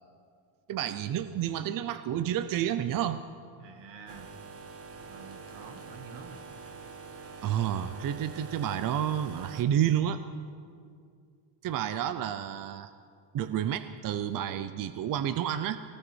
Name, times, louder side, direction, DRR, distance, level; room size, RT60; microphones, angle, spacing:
voice 1, 0.7-3.2 7.4-10.2 11.6-12.9 13.3-15.8, right 10 dB, 45° right, 11 dB, 0.7 m, -30 dB
voice 2, 3.6-4.3 5.1-6.5, right 5 dB, 65° right, 5 dB, 2.3 m, -48 dB
sound 1, 4.1-9.6, right 4 dB, 30° right, 1.4 m, -45 dB
23.0 x 18.5 x 6.4 m, 2.3 s
cardioid pair, 155°, 46 cm